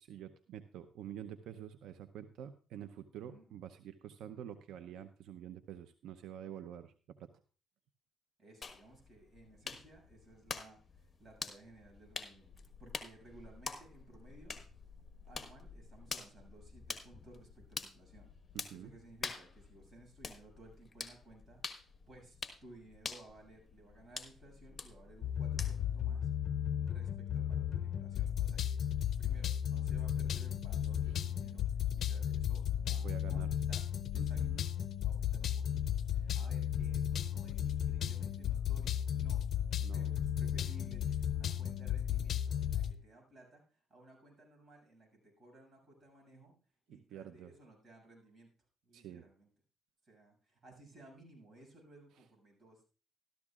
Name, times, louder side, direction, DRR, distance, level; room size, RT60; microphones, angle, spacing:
voice 1, 0.0-7.3 18.5-18.9 32.9-33.5 34.1-34.6 39.8-40.1 46.9-47.5 48.9-49.2, right 10 dB, 80° right, 10 dB, 0.6 m, -48 dB
voice 2, 3.2-3.5 8.4-14.6 15.2-18.3 18.7-26.3 26.8-33.8 34.1-34.4 35.0-39.4 39.9-46.5 46.9-48.5 48.8-49.5 50.0-52.9, right 2 dB, 35° right, 0 dB, 6.9 m, -58 dB
sound 1, 8.6-26.0, left 5 dB, 35° left, 1.3 m, -47 dB
sound 2, 25.2-42.9, left 10 dB, 65° left, 0.6 m, -34 dB
13.5 x 13.0 x 2.4 m, 0.37 s
cardioid pair, 90°, 0 cm